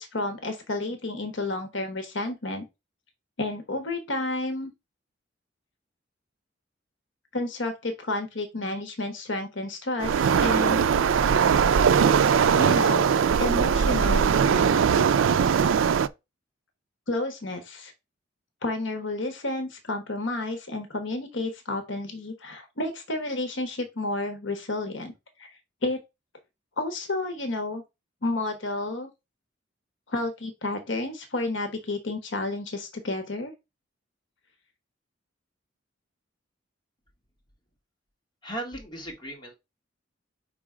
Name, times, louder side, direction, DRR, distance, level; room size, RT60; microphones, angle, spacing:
voice 1, 0.0-2.6 3.4-4.7 7.3-10.8 12.6-13.1 13.4-14.4 17.1-17.9 18.6-25.1 25.4-25.5 25.8-26.0 26.8-27.8 28.2-29.1 30.1-33.5, left 2 dB, 70° left, 6 dB, 1.1 m, -31 dB
Waves surf, 10.0-16.1, right 7 dB, 85° right, 0.4 m, -21 dB
voice 2, 38.4-39.5, right 1 dB, 25° left, 0 dB, 1.9 m, -36 dB
5.0 x 3.8 x 4.9 m, 0.24 s
head